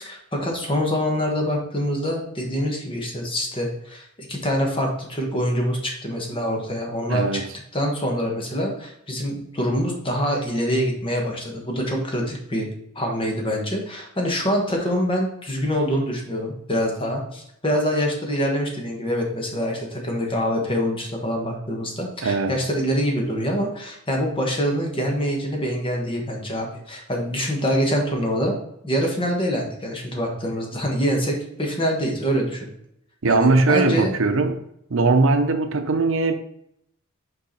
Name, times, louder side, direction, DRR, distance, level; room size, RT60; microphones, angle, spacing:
voice 1, 0.0-7.4 7.7-12.7 12.9-28.5 28.8-32.7 33.2-34.1, equal, 25° left, 1 dB, 1.4 m, -25 dB
voice 2, 7.1-7.4 22.2-22.5 33.2-34.6 34.9-36.3, right 3 dB, 65° right, 7 dB, 0.7 m, -20 dB
5.5 x 4.7 x 4.2 m, 0.74 s
head